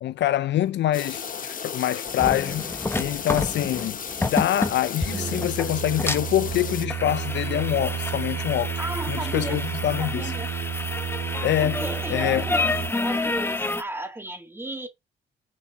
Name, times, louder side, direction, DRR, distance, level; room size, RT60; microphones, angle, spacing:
voice 1, 0.0-8.8 9.1-10.3 11.4-11.8 12.1-12.4, left 12 dB, 65° left, 0.5 m, -25 dB
sound 1, 0.9-6.9, left 6 dB, 45° left, 1.2 m, -34 dB
sound 2, 2.1-13.8, left 2 dB, 10° left, 0.9 m, -30 dB
Singing, 5.0-12.9, right 9 dB, 85° right, 1.9 m, -32 dB
voice 2, 8.8-9.6 10.0-10.5 11.6-12.7 13.0-14.9, right 1 dB, 10° right, 1.8 m, -34 dB
7.3 x 4.5 x 4.5 m
cardioid pair, 90°, 20 cm